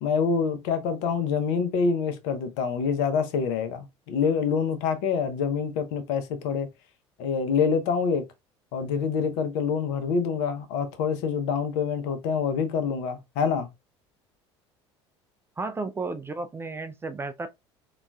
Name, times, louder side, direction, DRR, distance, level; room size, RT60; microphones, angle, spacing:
voice 1, 0.0-6.7 7.2-8.2 8.7-13.7, left 6 dB, 60° left, 0.7 m, -26 dB
voice 2, 15.6-17.5, right 3 dB, 15° right, 0.3 m, -33 dB
3.9 x 2.3 x 2.2 m
figure-of-eight pair, 65°, 15 cm